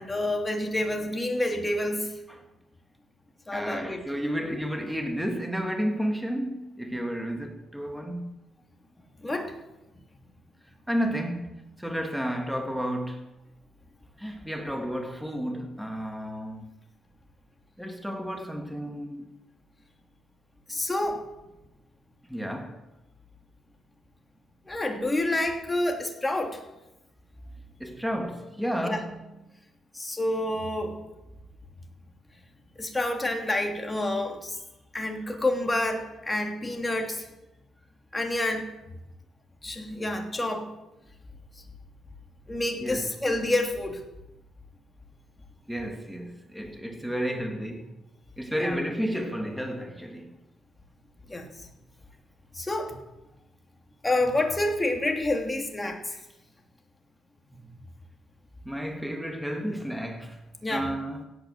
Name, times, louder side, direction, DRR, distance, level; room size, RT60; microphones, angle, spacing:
voice 1, 0.0-2.2 3.5-4.0 9.2-9.5 20.7-21.2 24.7-26.6 28.8-29.0 29.9-31.0 32.8-34.6 34.9-37.3 38.1-38.7 39.6-40.7 42.5-44.0 48.6-48.8 51.3-51.7 52.5-53.0 54.0-56.2 57.5-57.7 60.6-60.9, left 1 dB, 15° left, 2.9 m, -28 dB
voice 2, 3.5-8.3 10.9-13.3 14.2-16.6 17.8-19.3 22.3-22.8 27.8-29.3 42.8-43.1 45.7-48.0 48.4-50.4 58.6-60.4 60.7-61.2, equal, ahead, 2.0 m, -32 dB
17.0 x 9.0 x 8.1 m
cardioid pair, 90°, 0 cm